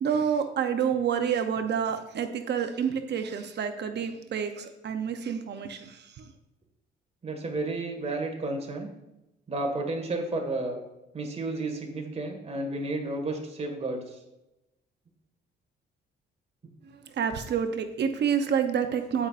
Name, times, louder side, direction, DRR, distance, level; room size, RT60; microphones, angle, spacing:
voice 1, 0.0-6.3 16.8-19.3, right 7 dB, 60° right, 7 dB, 0.8 m, -28 dB
voice 2, 7.2-8.9 9.5-10.8 11.1-14.2, right 2 dB, 30° right, 3 dB, 1.8 m, -32 dB
16.0 x 5.5 x 2.5 m, 0.92 s
cardioid pair, 90°, 20 cm